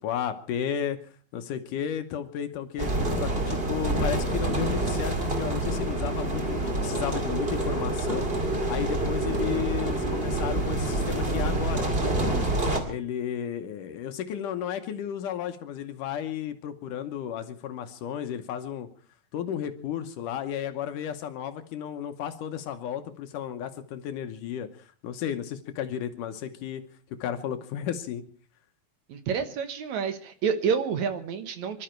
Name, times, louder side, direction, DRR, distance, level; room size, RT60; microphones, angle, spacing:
voice 1, 0.0-1.0 1.3-2.9 3.2-8.3 8.7-12.5 12.9-18.9 19.3-26.8 27.1-28.2, left 9 dB, 70° left, 9 dB, 2.3 m, -33 dB
sound 1, 2.8-12.8, right 2 dB, 20° right, 2.0 m, -27 dB
voice 2, 29.1-31.8, right 6 dB, 60° right, 9 dB, 2.2 m, -29 dB
25.0 x 12.5 x 4.5 m, 0.43 s
omnidirectional pair, 4.1 m